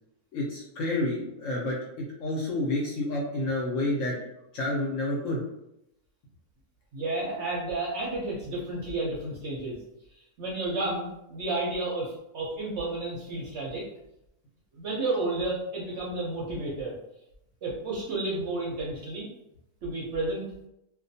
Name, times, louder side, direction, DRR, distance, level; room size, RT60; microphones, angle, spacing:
voice 1, 0.3-1.8 2.2-4.2 4.5-5.4, left 2 dB, 70° left, -3 dB, 0.8 m, -29 dB
voice 2, 6.9-9.8 10.4-13.9 14.7-16.9 17.6-19.3 19.8-20.5, right 2 dB, 65° right, -4 dB, 0.8 m, -31 dB
2.4 x 2.2 x 2.6 m, 0.82 s
omnidirectional pair, 1.6 m